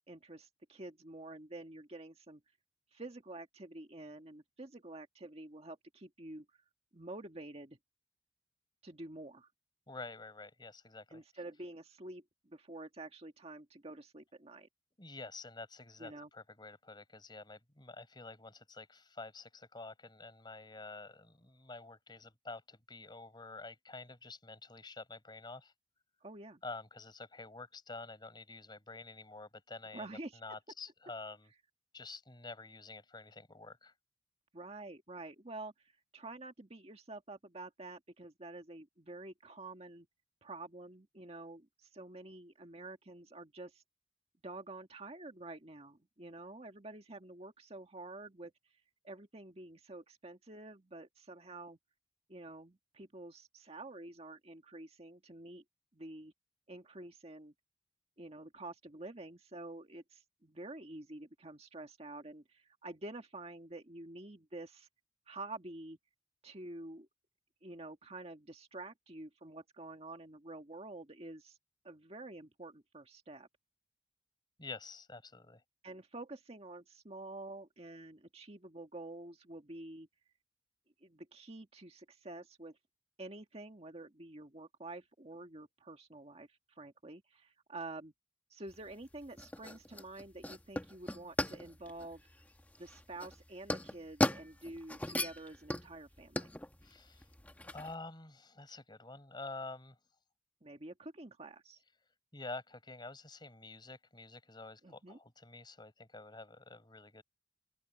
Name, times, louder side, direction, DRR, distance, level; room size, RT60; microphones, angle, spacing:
voice 1, 0.1-2.4 2.9-6.4 6.9-7.8 8.8-9.5 11.1-14.7 16.0-16.3 26.2-26.6 29.9-30.6 34.5-40.1 40.4-43.8 44.4-48.5 49.0-51.8 52.3-55.6 55.9-56.3 56.7-57.5 58.2-64.9 65.3-66.0 66.4-67.1 67.6-71.6 71.8-73.5 75.8-80.1 81.0-82.8 83.2-88.1 88.5-92.2 92.8-96.5 100.6-101.8 104.8-105.2, right 2 dB, 35° right, 1.8 m, -48 dB
voice 2, 9.9-11.2 15.0-25.7 26.6-31.5 31.9-33.9 74.6-75.6 96.8-97.2 97.6-100.0 102.3-107.2, left 3 dB, 25° left, 5.0 m, -48 dB
sound 1, 88.7-97.9, left 1 dB, 10° left, 1.0 m, -38 dB
head